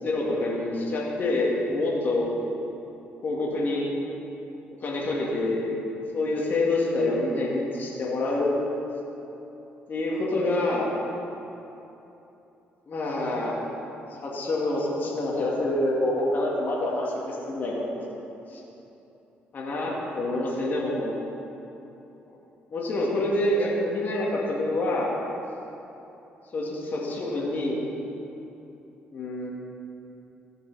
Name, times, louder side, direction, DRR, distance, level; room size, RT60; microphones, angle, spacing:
voice 1, 0.0-2.3 3.2-3.9 4.8-5.7 6.1-8.5 9.9-10.9 12.9-13.6 14.2-18.0 18.5-18.6 19.5-21.1 22.7-25.1 26.5-27.8 29.1-29.5, left 2 dB, 50° left, -4 dB, 1.8 m, -27 dB
15.0 x 5.4 x 4.0 m, 3.0 s
cardioid pair, 85°, 4 cm